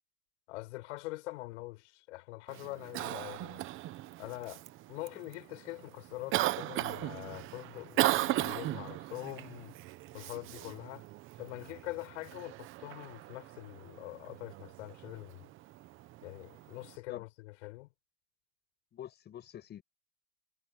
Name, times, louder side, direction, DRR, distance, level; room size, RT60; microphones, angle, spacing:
voice 1, 0.5-3.6 4.2-4.6 4.9-9.8 10.1-11.0 11.4-15.5 16.2-17.9, left 20 dB, 70° left, 6.9 m, -44 dB
Cough, 2.5-17.0, right 16 dB, 35° right, 1.0 m, -38 dB
voice 2, 18.9-19.8, left 11 dB, 25° left, 6.2 m, -46 dB
supercardioid pair, 150°, 37 cm